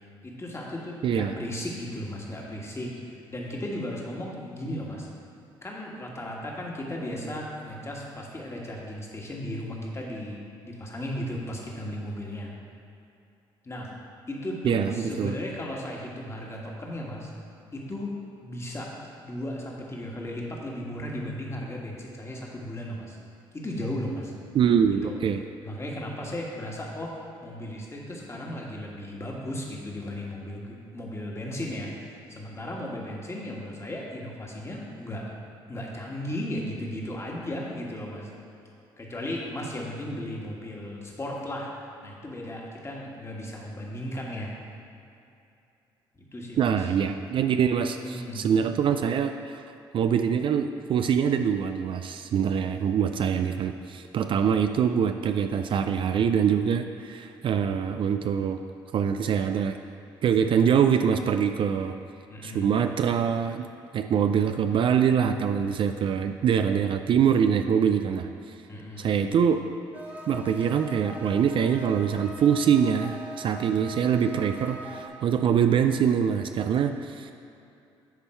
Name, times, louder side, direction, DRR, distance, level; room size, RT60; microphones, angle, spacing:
voice 1, 0.2-5.1 5.6-12.5 13.6-13.9 14.3-17.3 17.7-18.1 18.4-18.9 19.2-23.2 23.5-24.3 25.0-25.2 25.6-35.3 35.7-38.3 39.0-41.7 42.0-44.5 46.1-46.9 48.0-48.5 62.3-62.8 68.7-69.1, left 1 dB, 25° left, -2 dB, 1.6 m, -35 dB
voice 2, 24.5-25.4 46.6-49.6 49.9-58.6 58.9-59.8 60.2-62.0 62.4-63.7 63.9-68.3 69.0-69.6 70.3-77.3, right 7 dB, 50° right, 7 dB, 0.4 m, -24 dB
sound 1, 69.9-75.1, right 1 dB, 15° right, 1.1 m, -41 dB
10.0 x 3.6 x 4.5 m, 2.7 s
supercardioid pair, 65°, 11 cm